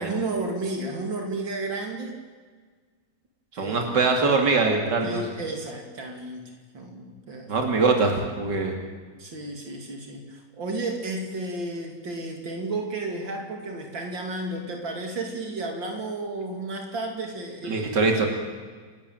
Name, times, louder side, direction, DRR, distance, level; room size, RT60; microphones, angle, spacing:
voice 1, 0.0-2.1 3.5-3.9 5.0-7.8 9.2-18.0, right 2 dB, 80° right, 2 dB, 3.4 m, -32 dB
voice 2, 3.5-5.2 7.5-8.8 17.6-18.3, right 3 dB, 65° right, 3 dB, 3.4 m, -23 dB
29.0 x 12.5 x 9.3 m, 1.5 s
omnidirectional pair, 2.0 m